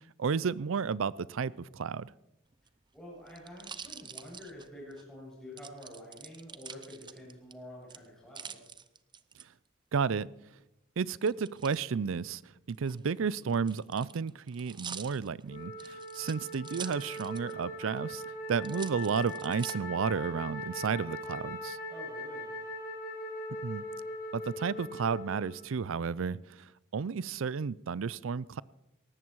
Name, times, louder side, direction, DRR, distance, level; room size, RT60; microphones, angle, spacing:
voice 1, 0.2-2.1 9.9-10.3 11.0-12.4 12.7-18.2 18.5-21.8 23.6-23.8 24.3-26.7 26.9-28.6, right 6 dB, 70° right, 0.5 m, -32 dB
sound 1, 2.5-5.0 5.6-7.5 7.9-9.4 11.3-11.8 12.7-17.6 18.0-18.1 18.6-19.7 20.4-20.9, right 7 dB, 25° right, 0.6 m, -46 dB
voice 2, 2.9-8.7 21.9-22.5, left 1 dB, 5° left, 7.2 m, -48 dB
Wind instrument woodwind instrument, 15.5-25.8, left 1 dB, 45° left, 3.1 m, -41 dB
18.5 x 14.5 x 4.7 m
head